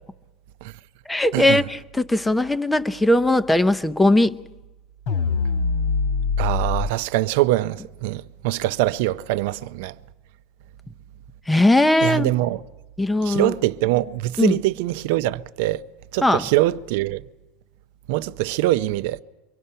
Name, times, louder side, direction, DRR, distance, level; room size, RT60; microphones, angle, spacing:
voice 1, 1.1-4.3 11.5-12.3 13.0-13.5 14.4-14.6 16.2-16.4, left 1 dB, 5° left, 0.6 m, -19 dB
sound 1, 5.1-6.9, left 4 dB, 70° left, 2.9 m, -23 dB
voice 2, 6.4-9.9 12.0-12.6 13.2-15.8 16.1-17.2 18.1-19.2, right 16 dB, 70° right, 0.6 m, -23 dB
24.0 x 24.0 x 5.6 m
supercardioid pair, 155°, 0 cm